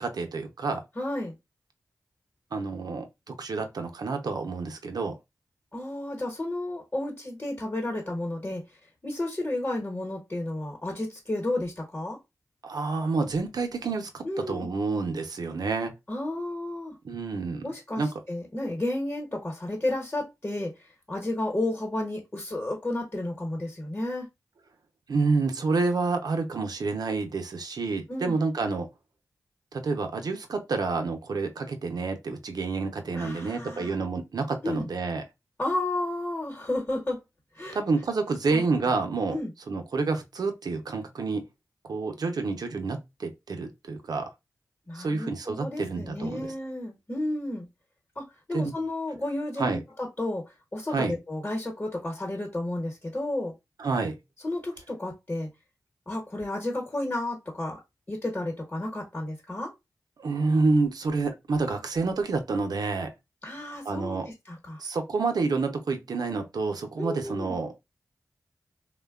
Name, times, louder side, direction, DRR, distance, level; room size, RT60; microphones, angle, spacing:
voice 1, 0.0-0.8 2.5-5.2 12.6-15.9 17.0-17.6 18.0-18.1 25.1-28.9 29.7-35.2 37.7-39.4 39.7-41.5 41.9-44.3 44.9-46.5 48.5-48.7 49.6-49.8 50.9-51.1 53.8-54.2 60.2-63.1 63.8-64.3 64.8-67.7, right 3 dB, 70° right, 0.6 m, -28 dB
voice 2, 1.0-1.3 5.7-8.6 9.0-12.2 14.2-14.7 16.1-17.0 17.6-24.3 28.1-28.4 33.1-33.9 34.6-34.9 35.6-37.2 37.5-37.8 38.5-38.6 39.3-39.5 44.9-47.7 48.2-53.5 54.4-55.5 56.1-57.8 58.1-59.7 63.4-64.8 67.0-67.6, left 1 dB, 25° left, 1.0 m, -32 dB
3.1 x 2.2 x 2.3 m
cardioid pair, 55°, 7 cm